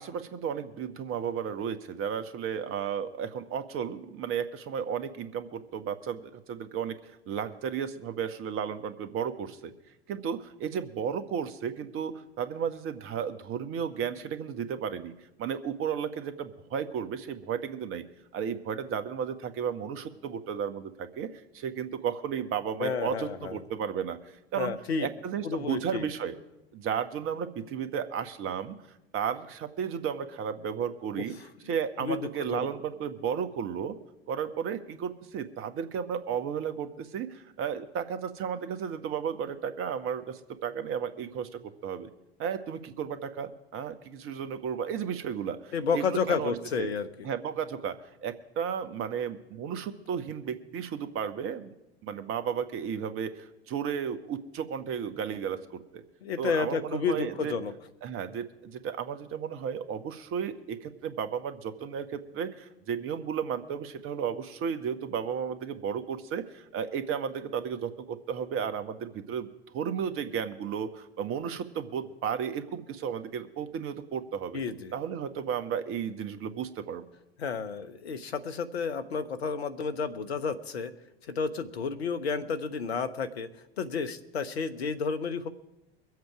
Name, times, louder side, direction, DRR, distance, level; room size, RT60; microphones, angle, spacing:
voice 1, 0.0-9.7 10.1-18.0 18.3-24.2 24.5-24.7 25.0-26.4 26.7-28.8 29.1-31.3 31.7-34.0 34.3-42.1 42.4-46.9 47.2-51.7 52.0-56.0 56.4-57.5 58.0-74.6 74.9-77.0, right 7 dB, 40° right, 10 dB, 1.4 m, -34 dB
voice 2, 22.8-23.6 24.6-25.1 25.4-26.1 31.2-31.3 31.6-32.7 45.7-47.1 56.2-57.7 74.5-74.9 77.4-80.9 81.2-83.5 83.8-85.5, left 5 dB, 75° left, 10 dB, 1.1 m, -31 dB
23.5 x 8.0 x 4.9 m, 0.93 s
figure-of-eight pair, 75°, 31 cm